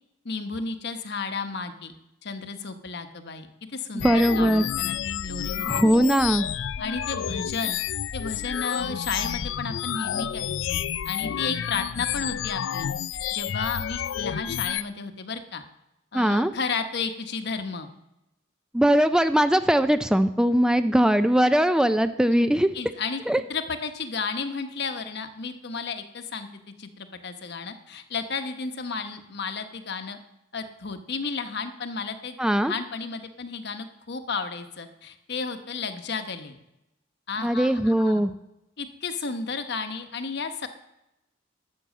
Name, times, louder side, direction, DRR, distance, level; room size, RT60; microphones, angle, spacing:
voice 1, 0.2-1.9 2.2-3.5 3.7-5.7 6.8-7.8 8.1-12.9 13.3-15.6 16.1-17.9 22.7-23.2 23.5-30.2 30.5-32.3 32.6-36.6 37.3-38.3 38.8-40.7, left 5 dB, 60° left, 8 dB, 1.0 m, -33 dB
sound 1, 4.0-14.8, left 9 dB, 85° left, 0.4 m, -30 dB
voice 2, 4.0-4.6 5.7-6.5 16.1-16.5 18.7-22.7 23.3-23.4 32.4-32.7 37.4-38.3, equal, 5° right, 11 dB, 0.3 m, -20 dB
12.0 x 6.2 x 7.5 m, 0.89 s
head